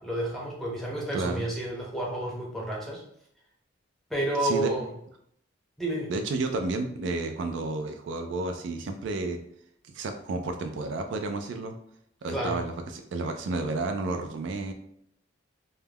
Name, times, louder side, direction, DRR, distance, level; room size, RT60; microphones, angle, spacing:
voice 1, 0.0-3.0 4.1-4.9 5.8-6.1 12.3-12.6, right 1 dB, ahead, -4 dB, 0.6 m, -30 dB
voice 2, 1.1-1.4 4.4-4.7 6.1-9.4 9.9-11.7 12.2-14.7, right 3 dB, 65° right, 5 dB, 0.3 m, -31 dB
2.2 x 2.1 x 3.3 m, 0.71 s
head